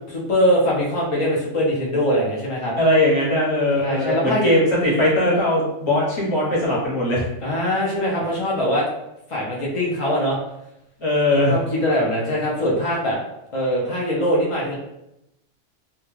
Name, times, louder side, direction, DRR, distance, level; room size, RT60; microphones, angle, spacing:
voice 1, 0.0-2.7 3.8-4.6 7.4-8.8 9.3-10.4 11.5-13.2 13.5-14.7, equal, 55° left, -4 dB, 0.3 m, -22 dB
voice 2, 2.8-7.3 11.0-11.6, left 1 dB, 25° left, -6 dB, 0.9 m, -20 dB
2.2 x 2.2 x 3.1 m, 0.86 s
omnidirectional pair, 1.3 m